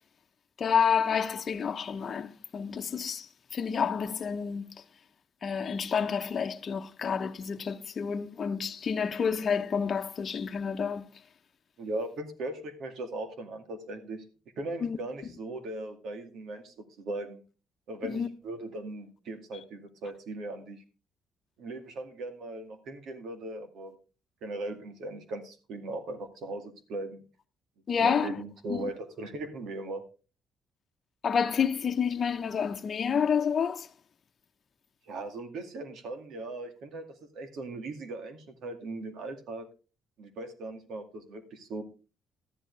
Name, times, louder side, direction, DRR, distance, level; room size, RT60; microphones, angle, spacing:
voice 1, 0.6-3.3 3.5-4.8 5.4-11.1 14.8-15.0 18.0-18.3 27.9-28.3 28.7-28.9 31.2-33.9, left 6 dB, 45° left, 0.9 m, -29 dB
voice 2, 11.8-14.2 14.6-17.4 17.9-20.8 21.6-24.0 24.4-27.2 28.0-30.0 35.1-37.1 37.3-39.7 40.2-41.8, right 2 dB, 75° right, 2.2 m, -38 dB
13.0 x 11.0 x 3.3 m
cardioid pair, 90°, 0 cm